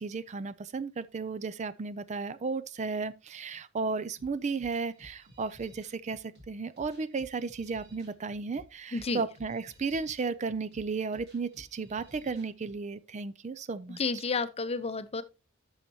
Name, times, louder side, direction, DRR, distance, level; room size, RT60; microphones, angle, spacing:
voice 1, 0.0-14.2, right 4 dB, 35° right, 0.4 m, -34 dB
sound 1, 4.2-12.8, equal, 55° right, 2.9 m, -56 dB
voice 2, 14.0-15.2, left 4 dB, 30° left, 0.6 m, -31 dB
11.5 x 6.5 x 2.8 m
head